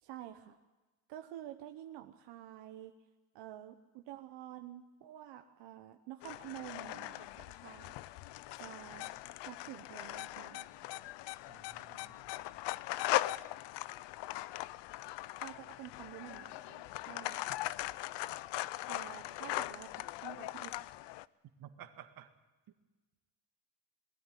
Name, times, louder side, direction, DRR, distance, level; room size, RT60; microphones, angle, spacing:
voice 1, 0.0-0.6 1.1-2.9 3.3-7.9 8.6-9.1 9.5-10.7 15.4-17.4 18.9-20.9, right 12 dB, 75° right, 6 dB, 1.2 m, -49 dB
sound 1, 6.2-21.3, left 17 dB, 75° left, 0.7 m, -40 dB
voice 2, 11.5-12.2 21.6-22.3, right 10 dB, 55° right, 8 dB, 1.8 m, -53 dB
20.5 x 13.5 x 9.2 m, 1.2 s
cardioid pair, 165°, 43 cm